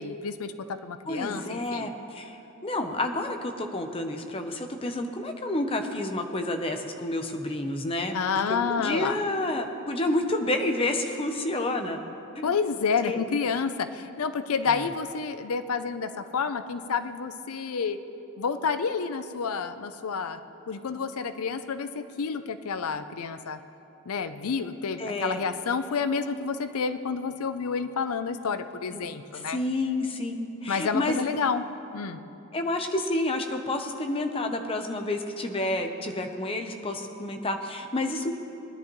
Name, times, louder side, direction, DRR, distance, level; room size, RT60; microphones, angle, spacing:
voice 1, 0.0-1.9 8.1-9.2 12.4-18.0 18.4-20.4 20.7-23.6 24.1-29.6 30.7-31.6 31.9-32.2, left 5 dB, 90° left, 11 dB, 0.5 m, -29 dB
voice 2, 1.1-8.2 8.5-12.0 12.4-12.5 13.0-13.2 14.7-14.9 25.0-25.4 28.9-29.1 29.3-31.2 32.5-38.3, left 1 dB, 25° left, 5 dB, 0.7 m, -29 dB
19.5 x 10.5 x 3.1 m, 2.8 s
head